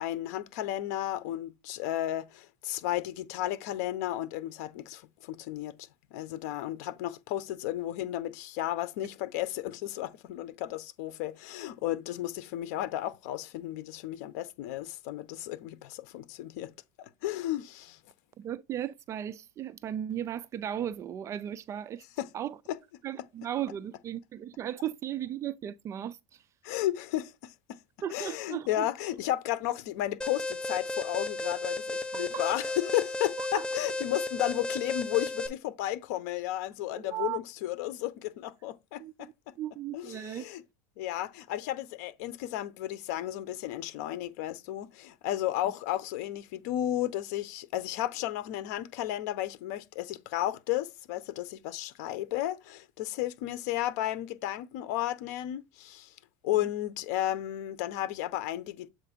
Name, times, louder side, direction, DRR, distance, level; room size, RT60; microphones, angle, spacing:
voice 1, 0.0-16.7 17.0-18.0 22.2-22.3 22.7-22.8 26.6-27.8 28.1-39.3 39.9-40.6 41.0-56.1 56.4-58.9, left 13 dB, 75° left, 0.8 m, -33 dB
voice 2, 18.4-22.0 22.3-22.6 23.0-26.4 28.0-28.9 32.1-32.4 33.4-33.7 37.0-37.4 39.0-39.3 39.6-40.5 45.6-45.7, right 10 dB, 35° right, 0.4 m, -36 dB
Alarm, 30.2-35.5, left 2 dB, 10° left, 0.7 m, -34 dB
7.3 x 2.6 x 5.1 m
supercardioid pair, 135°, 9 cm